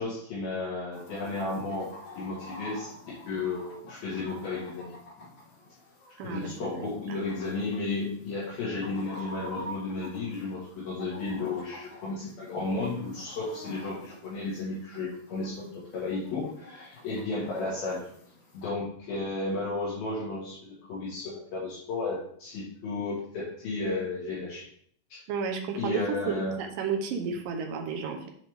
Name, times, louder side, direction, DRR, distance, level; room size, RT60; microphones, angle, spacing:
voice 1, 0.0-1.9 2.2-2.9 3.3-4.9 6.2-18.0 18.5-24.7 25.1-25.2 25.8-26.6, left 3 dB, 65° left, -7 dB, 3.4 m, -33 dB
Chicken rooster, 0.9-18.7, equal, 90° left, 1.0 m, -48 dB
voice 2, 6.2-6.9 25.3-28.3, right 5 dB, 75° right, 3 dB, 2.1 m, -32 dB
7.9 x 7.2 x 3.5 m, 0.62 s
omnidirectional pair, 5.0 m